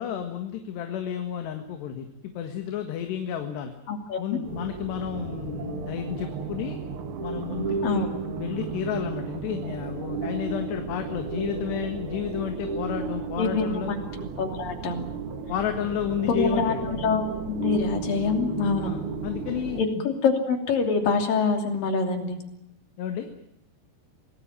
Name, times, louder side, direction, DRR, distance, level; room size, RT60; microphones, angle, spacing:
voice 1, 0.0-3.7 4.2-6.8 7.2-8.1 8.4-13.9 15.5-16.8 18.8-20.1 23.0-23.3, left 9 dB, 75° left, 6 dB, 3.8 m, -32 dB
voice 2, 3.9-4.4 7.8-8.1 13.4-15.1 16.3-18.9 19.8-19.9 20.2-22.4, left 5 dB, 55° left, 5 dB, 4.5 m, -25 dB
sound 1, 4.4-19.8, right 5 dB, 75° right, 1.2 m, -33 dB
26.0 x 18.5 x 9.0 m, 0.83 s
omnidirectional pair, 4.9 m